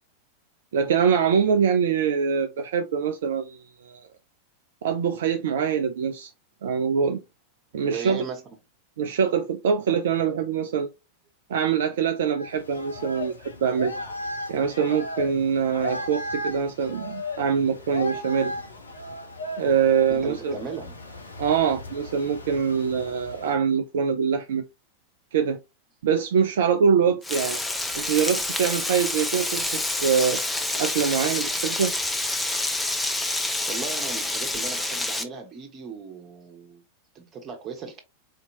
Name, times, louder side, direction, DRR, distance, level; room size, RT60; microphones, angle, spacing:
voice 1, 0.7-4.1 4.8-6.3 6.6-7.2 7.7-8.2 9.0-10.9 11.5-13.3 13.6-13.9 14.5-18.5 19.6-20.5 21.4-24.6 25.3-25.6 26.0-27.6 27.9-30.4 30.8-31.9, right 7 dB, 60° right, 0.4 m, -24 dB
voice 2, 7.8-8.6 20.1-20.9 33.7-36.8 37.1-38.0, right 5 dB, 30° right, 1.1 m, -37 dB
sound 1, 12.4-23.5, left 1 dB, 75° left, 0.7 m, -36 dB
Frying (food), 27.2-35.2, left 2 dB, 5° left, 0.6 m, -28 dB
4.2 x 2.8 x 2.7 m
figure-of-eight pair, 90°, 0 cm